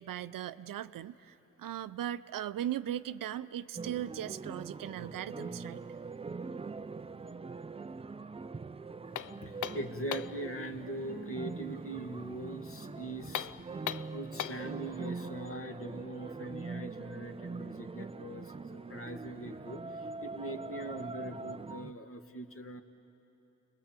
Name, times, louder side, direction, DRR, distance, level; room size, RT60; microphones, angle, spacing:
voice 1, 0.0-5.8, right 11 dB, 75° right, 14 dB, 0.6 m, -38 dB
sound 1, 3.8-21.9, right 4 dB, 20° right, 0.5 m, -43 dB
sound 2, 9.0-15.2, left 4 dB, 25° left, 0.9 m, -57 dB
sound 3, 9.1-10.4 13.2-14.7, left 11 dB, 65° left, 0.5 m, -39 dB
voice 2, 9.4-13.5 14.1-18.5 18.9-22.8, right 1 dB, 40° left, 5 dB, 2.0 m, -41 dB
30.0 x 21.0 x 7.5 m, 3.0 s
cardioid pair, 55°, 33 cm